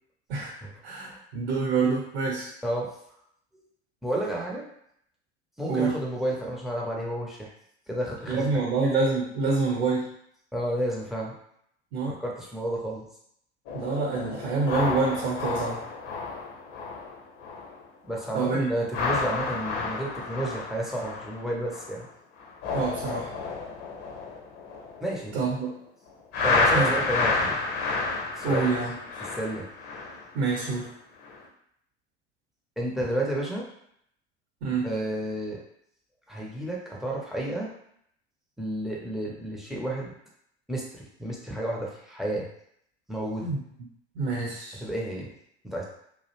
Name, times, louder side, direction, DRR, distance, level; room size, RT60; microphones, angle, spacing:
voice 1, 0.8-2.5 5.6-5.9 8.3-10.1 11.9-12.2 13.7-15.8 18.3-18.7 22.7-23.3 25.3-25.7 26.7-26.9 28.4-28.9 30.3-30.9 34.6-34.9 43.4-43.6 44.1-44.8, right 4 dB, 60° right, -3 dB, 0.8 m, -26 dB
voice 2, 4.0-4.6 5.6-7.5 7.9-8.7 10.5-11.3 12.2-13.0 18.1-22.1 25.0-25.3 26.4-27.7 28.4-28.7 29.3-29.7 32.8-33.6 34.8-35.6 36.3-37.7 38.6-40.1 40.7-42.4 43.1-43.5 44.8-45.3 45.6-45.8, right 1 dB, ahead, -3 dB, 0.5 m, -31 dB
sound 1, 13.7-17.8 18.1-18.4 18.8-22.0 22.4-25.6 26.3-30.8 31.2-31.5, left 3 dB, 45° left, 0.7 m, -30 dB
2.4 x 2.1 x 3.0 m, 0.72 s
figure-of-eight pair, 70°, 34 cm